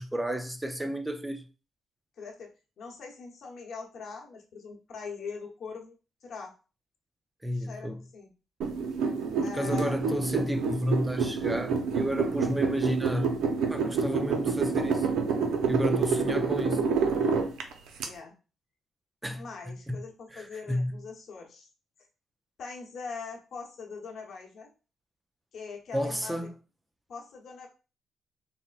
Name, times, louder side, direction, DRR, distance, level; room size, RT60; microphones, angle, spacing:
voice 1, 0.0-1.5 7.4-8.0 9.5-13.4 13.7-15.1 15.7-16.9 19.2-20.0 20.3-20.9 25.9-26.5, equal, 10° right, 0.3 m, -31 dB
voice 2, 2.2-2.5 2.8-5.9 6.2-6.5 7.5-8.3 9.4-10.0 18.0-18.4 19.3-21.7 22.6-24.7 25.5-26.4 27.1-27.7, left 5 dB, 60° left, 0.9 m, -42 dB
sound 1, 8.6-18.1, right 5 dB, 85° right, 0.5 m, -28 dB
4.1 x 2.1 x 2.3 m
cardioid pair, 90°, 0 cm